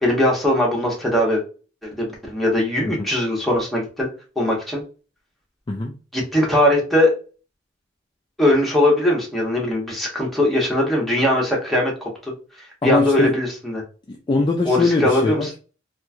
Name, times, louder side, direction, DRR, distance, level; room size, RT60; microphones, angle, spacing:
voice 1, 0.0-1.4 1.8-4.1 4.4-4.8 6.1-7.1 8.4-12.3 12.8-13.8 14.7-15.5, left 1 dB, ahead, 0.9 m, -20 dB
voice 2, 12.8-13.3 14.1-15.6, left 3 dB, 25° left, 0.3 m, -21 dB
3.0 x 2.5 x 2.2 m
head